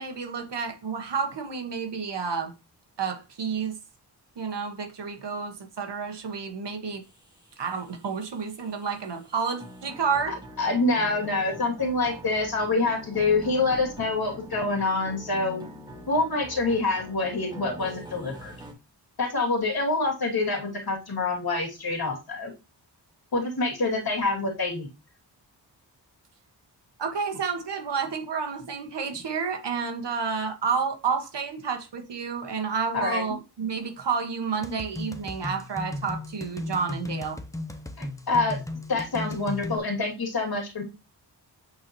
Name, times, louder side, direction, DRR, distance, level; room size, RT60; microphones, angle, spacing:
voice 1, 0.0-2.5 3.0-3.8 4.4-7.0 7.6-10.4 27.0-37.4, right 5 dB, 75° right, 1.6 m, -30 dB
sound 1, 7.0-18.7, equal, 10° right, 1.8 m, -44 dB
voice 2, 10.6-15.7 16.1-18.5 19.2-22.5 23.3-24.9 32.9-33.2 38.0-38.6 38.9-40.8, left 3 dB, 60° left, 2.7 m, -26 dB
sound 2, 34.6-39.8, left 1 dB, 10° left, 0.8 m, -36 dB
8.4 x 4.3 x 3.0 m
wide cardioid pair, 90°, 42 cm